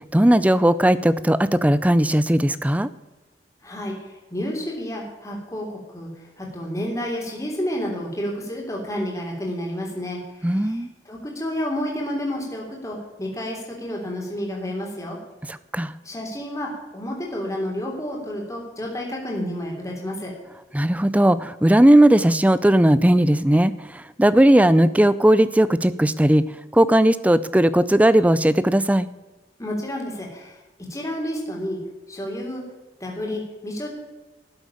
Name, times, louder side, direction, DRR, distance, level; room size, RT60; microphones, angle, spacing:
voice 1, 0.1-2.9 10.4-10.9 15.5-15.9 20.7-26.4 26.7-29.1, right 1 dB, 10° right, 16 dB, 0.4 m, -17 dB
voice 2, 3.6-3.9 4.3-6.1 6.4-15.2 16.0-20.3 29.6-30.6 30.9-31.8 32.1-32.6 33.0-33.9, equal, 15° left, -1 dB, 3.2 m, -30 dB
12.5 x 7.6 x 8.5 m, 1.2 s
head